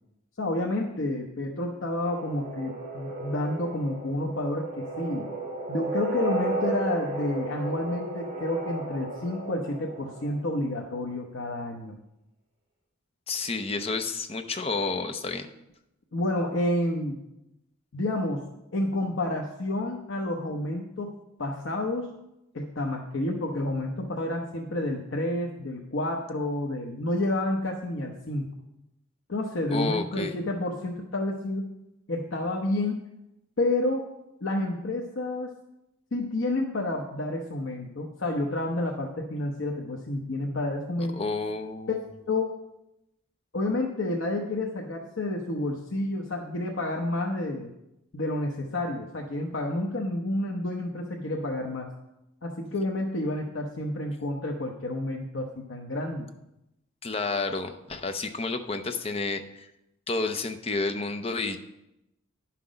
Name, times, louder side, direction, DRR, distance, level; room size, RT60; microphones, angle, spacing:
voice 1, 0.4-5.3 5.7-12.0 16.1-17.2 17.9-21.1 21.4-22.1 22.5-28.5 29.3-31.7 32.1-33.0 33.6-34.1 34.4-35.5 36.1-41.2 41.9-42.0 42.3-42.5 43.5-47.7 48.1-51.9 52.4-56.3, left 1 dB, 70° left, 0 dB, 0.9 m, -29 dB
sound 1, 2.0-10.6, right 2 dB, 30° right, 3.2 m, -34 dB
voice 2, 13.3-15.5 29.7-30.3 41.1-42.0 57.0-59.7 60.1-61.6, left 3 dB, 30° left, 7 dB, 0.6 m, -30 dB
11.0 x 5.9 x 5.1 m, 0.89 s
head